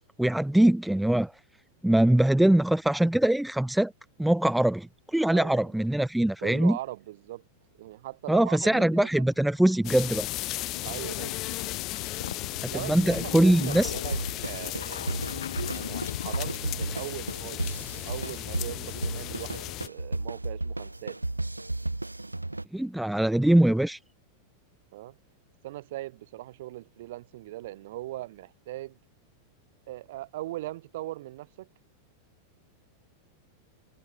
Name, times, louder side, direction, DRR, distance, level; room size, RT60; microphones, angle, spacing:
voice 1, 0.2-1.3 1.8-3.9 4.2-6.8 8.3-10.3 12.6-13.9 22.7-24.0, right 1 dB, 5° right, 0.4 m, -22 dB
voice 2, 5.3-5.7 6.4-7.4 7.8-9.3 10.8-11.4 12.7-21.2 24.9-25.2 25.6-29.0 29.9-31.7, right 16 dB, 55° right, 2.2 m, -40 dB
sound 1, 9.1-16.6, left 8 dB, 65° left, 2.8 m, -39 dB
sound 2, 9.8-19.9, left 18 dB, 35° left, 1.3 m, -36 dB
sound 3, 14.1-22.6, right 2 dB, 85° right, 1.9 m, -34 dB
figure-of-eight pair, 90°, 0 cm